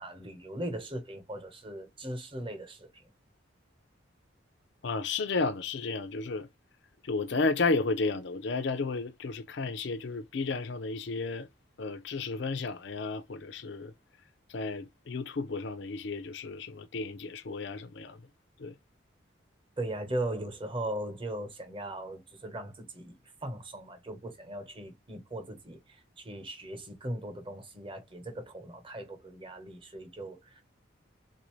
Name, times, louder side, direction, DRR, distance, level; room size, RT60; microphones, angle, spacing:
voice 1, 0.0-3.0 19.8-30.6, right 1 dB, 25° right, 1.0 m, -39 dB
voice 2, 4.8-6.5 7.0-11.5 11.8-13.9 14.5-18.2 18.6-18.7, left 3 dB, 65° left, 0.5 m, -32 dB
3.9 x 2.6 x 3.1 m
head